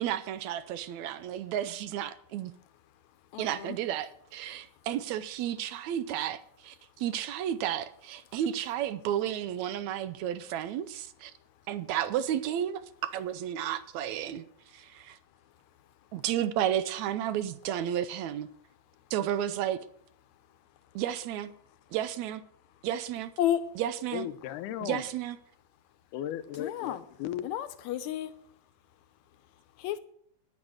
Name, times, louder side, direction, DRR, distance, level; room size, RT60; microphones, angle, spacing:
voice 1, 0.0-2.5 3.4-6.4 7.0-11.3 11.7-14.4 16.1-18.5 19.1-19.8 21.0-21.5 21.9-22.4 22.8-23.3 23.8-24.3 24.8-25.4, right 10 dB, 75° right, 1.8 m, -32 dB
voice 2, 3.3-3.8 23.4-23.6 26.6-27.0 27.4-28.3 29.8-30.0, left 11 dB, 75° left, 2.0 m, -31 dB
voice 3, 24.1-25.1 26.1-27.5, left 11 dB, 90° left, 2.2 m, -36 dB
9.7 x 9.7 x 6.4 m
omnidirectional pair, 3.6 m